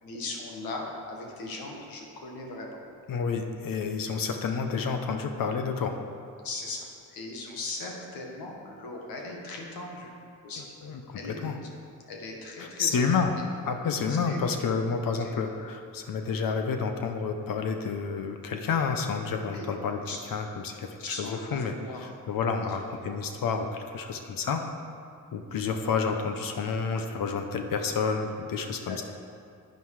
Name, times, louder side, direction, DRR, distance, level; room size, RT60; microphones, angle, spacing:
voice 1, 0.0-2.8 6.4-10.1 10.4-10.7 11.1-11.3 12.1-13.5 14.1-14.5 15.2-15.4 19.5-19.7 20.0-20.2 21.0-22.1 22.6-22.7 28.7-29.0, left 2 dB, 85° left, 0 dB, 1.7 m, -39 dB
voice 2, 3.1-6.0 10.8-11.5 12.6-13.3 13.7-20.0 20.3-21.7 22.3-24.6 25.3-29.0, left 5 dB, 70° left, 5 dB, 0.9 m, -29 dB
9.4 x 9.3 x 4.8 m, 2.3 s
cardioid pair, 75°, 35 cm